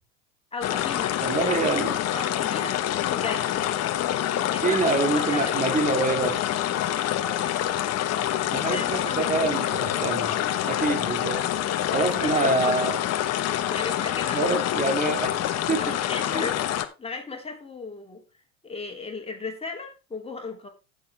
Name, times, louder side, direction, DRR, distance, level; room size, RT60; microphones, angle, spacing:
voice 1, 0.5-1.6 1.8-3.6 4.5-6.0 7.2-7.5 8.5-9.3 11.9-12.9 13.7-14.6 15.8-16.6 17.0-18.2 18.6-20.7, left 4 dB, 15° left, 2.8 m, -36 dB
sound 1, 0.6-16.8, left 12 dB, 40° left, 1.3 m, -26 dB
voice 2, 1.2-2.0 4.6-6.4 8.5-11.4 11.9-13.0 14.3-15.4 15.7-16.0 16.3-16.5, right 3 dB, 20° right, 2.4 m, -26 dB
14.0 x 6.9 x 3.4 m
hypercardioid pair, 100°, 41 cm